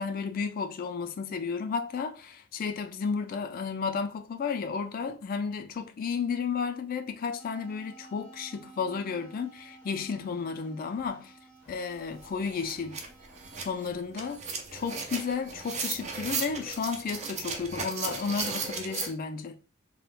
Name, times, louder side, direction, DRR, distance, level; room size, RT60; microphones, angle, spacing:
voice 1, 0.0-11.3 11.7-13.0 13.6-14.4 14.7-19.6, left 5 dB, 40° left, 0.3 m, -33 dB
sound 1, 7.4-13.9, right 2 dB, 5° left, 1.4 m, -53 dB
sound 2, 11.8-11.9 12.2-19.1, right 4 dB, 30° right, 0.4 m, -36 dB
3.4 x 2.1 x 2.4 m
head